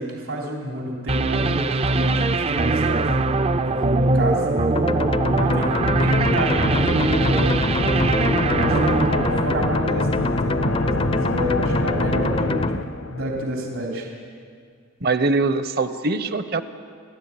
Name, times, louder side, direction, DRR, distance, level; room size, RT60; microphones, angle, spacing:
voice 1, 0.0-3.1 3.7-4.8 5.4-7.4 8.1-12.8 13.1-14.1, right 1 dB, 80° right, -1 dB, 3.4 m, -28 dB
sound 1, 1.1-10.1, right 2 dB, 30° right, 0.5 m, -22 dB
voice 2, 3.9-4.2 6.0-6.4 15.0-16.6, right 3 dB, 50° right, 11 dB, 0.9 m, -24 dB
sound 2, 4.8-12.8, left 2 dB, 25° left, 0.5 m, -26 dB
sound 3, 4.9-13.4, left 2 dB, 75° left, 1.1 m, -27 dB
30.0 x 12.0 x 8.4 m, 2.1 s
head